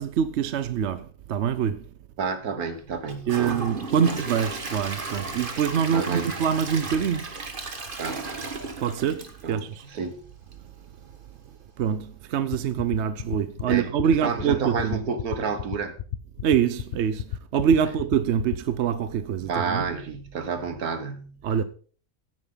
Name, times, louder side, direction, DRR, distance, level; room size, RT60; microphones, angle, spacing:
voice 1, 0.0-1.8 3.3-7.3 8.8-9.8 11.8-15.0 16.4-19.8 21.4-21.6, right 8 dB, 60° right, 0.8 m, -25 dB
voice 2, 2.2-3.7 4.1-4.2 5.9-6.3 8.0-8.2 9.4-10.2 13.7-16.0 17.9-18.0 19.4-21.4, right 5 dB, 85° right, 1.9 m, -30 dB
Gurgling / Toilet flush / Trickle dribble, 3.0-10.1 10.5-10.6 11.1-11.2, right 3 dB, 35° right, 1.7 m, -35 dB
sound 1, 12.5-18.6, left 10 dB, 60° left, 0.8 m, -31 dB
16.0 x 9.0 x 3.9 m
omnidirectional pair, 1.5 m